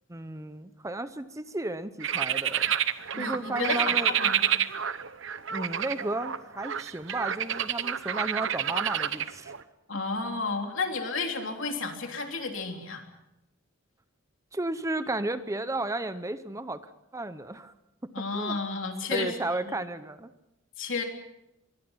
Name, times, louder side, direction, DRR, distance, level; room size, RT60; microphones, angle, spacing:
voice 1, 0.1-2.7 3.2-4.1 5.5-9.5 14.5-16.8 17.1-17.7 18.2-18.6 19.1-20.3, right 2 dB, 15° right, 12 dB, 0.7 m, -33 dB
sound 1, 2.0-9.6, right 9 dB, 65° right, 0.9 m, -29 dB
voice 2, 3.1-4.4 9.9-13.0 18.1-19.7 20.8-21.0, left 3 dB, 65° left, 3 dB, 3.4 m, -32 dB
25.0 x 22.5 x 5.7 m, 0.89 s
head